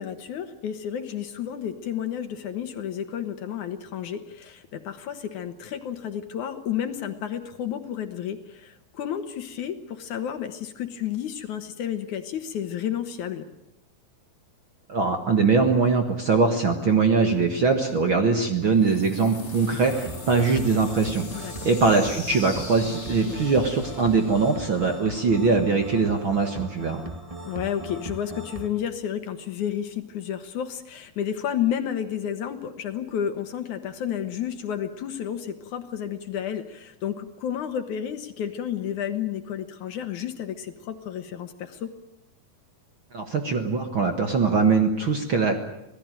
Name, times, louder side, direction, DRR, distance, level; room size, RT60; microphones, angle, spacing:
voice 1, 0.0-13.4 21.4-21.7 23.3-23.4 27.4-41.9, left 9 dB, 65° left, 8 dB, 2.5 m, -31 dB
voice 2, 14.9-27.0 43.1-45.6, right 4 dB, 45° right, 5 dB, 1.8 m, -22 dB
landing reverb, 18.6-25.5, left 3 dB, 20° left, 2.3 m, -40 dB
sound 1, 19.9-28.7, right 2 dB, 15° right, 1.1 m, -39 dB
26.5 x 18.0 x 9.2 m, 0.87 s
omnidirectional pair, 4.1 m